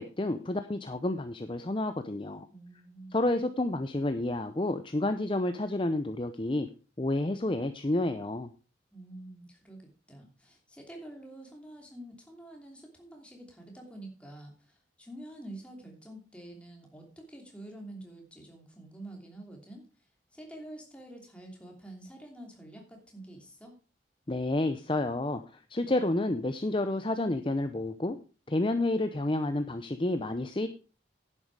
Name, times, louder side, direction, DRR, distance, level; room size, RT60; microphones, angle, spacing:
voice 1, 0.0-2.5 3.1-6.7 7.0-8.5 24.3-28.2 28.5-30.7, left 2 dB, 25° left, 9 dB, 0.6 m, -30 dB
voice 2, 2.5-3.2 8.9-19.8 20.3-23.7, right 1 dB, 5° left, 1 dB, 2.9 m, -47 dB
10.5 x 8.9 x 4.7 m, 0.35 s
head